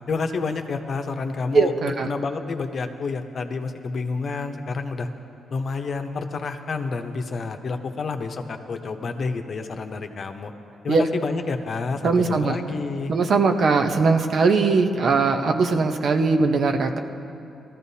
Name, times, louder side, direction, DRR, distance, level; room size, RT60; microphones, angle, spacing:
voice 1, 0.1-5.1 5.5-10.5 10.8-13.1, left 4 dB, 55° left, 6 dB, 0.8 m, -29 dB
voice 2, 1.5-2.1 10.9-11.0 12.0-12.6 13.1-17.0, right 4 dB, 60° right, 5 dB, 0.8 m, -20 dB
18.5 x 13.5 x 2.8 m, 2.7 s
cardioid pair, 75°, 0 cm